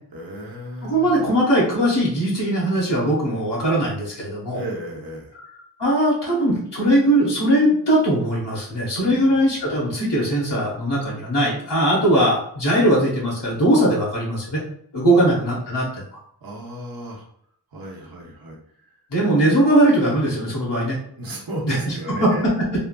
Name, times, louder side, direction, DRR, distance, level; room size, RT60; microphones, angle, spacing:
voice 1, 0.1-1.3 4.5-5.3 9.0-9.4 15.1-15.2 16.4-17.2 17.7-19.0 21.2-22.5, right 1 dB, 60° right, -3 dB, 0.8 m, -34 dB
voice 2, 0.8-4.6 5.8-14.6 14.9-16.2 19.1-21.0 21.7-22.3, right 1 dB, 80° left, -5 dB, 1.0 m, -20 dB
3.2 x 2.4 x 2.2 m, 0.68 s
wide cardioid pair, 40°, 41 cm